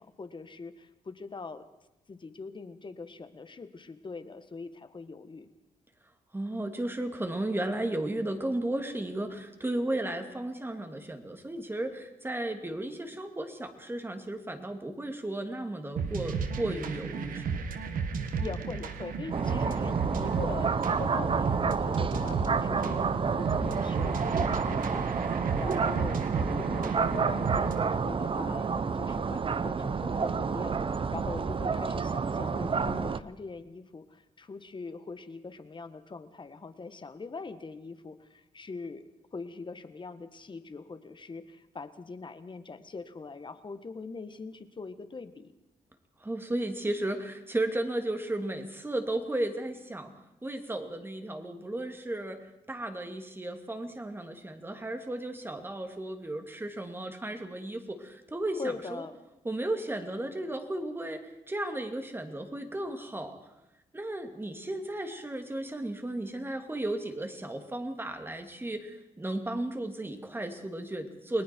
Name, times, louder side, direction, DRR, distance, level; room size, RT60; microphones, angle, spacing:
voice 1, 0.0-1.6 2.1-5.5 18.3-45.5 58.6-59.1, left 4 dB, 35° left, 11 dB, 1.6 m, -42 dB
voice 2, 6.3-17.6 46.2-50.1 50.4-52.4 52.7-59.1 59.4-63.4 63.9-71.4, right 1 dB, 15° right, 6 dB, 2.8 m, -34 dB
sound 1, 16.0-28.0, right 5 dB, 85° right, 1.8 m, -34 dB
sound 2, 19.3-33.2, right 5 dB, 40° right, 0.8 m, -29 dB
29.5 x 20.0 x 4.6 m, 0.96 s
cardioid pair, 95°, 14 cm